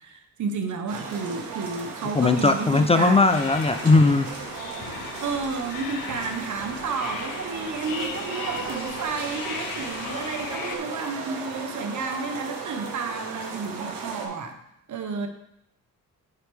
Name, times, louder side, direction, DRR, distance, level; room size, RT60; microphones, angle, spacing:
voice 1, 0.0-3.3 5.2-14.6 14.9-15.3, right 4 dB, 60° right, 6 dB, 1.0 m, -31 dB
sound 1, 0.9-14.3, right 4 dB, 90° right, 1.2 m, -36 dB
voice 2, 2.2-4.3, left 3 dB, 20° left, 7 dB, 0.4 m, -18 dB
sound 2, 3.3-10.8, left 7 dB, 90° left, 0.7 m, -38 dB
7.8 x 4.8 x 3.4 m, 0.78 s
cardioid pair, 75°, 33 cm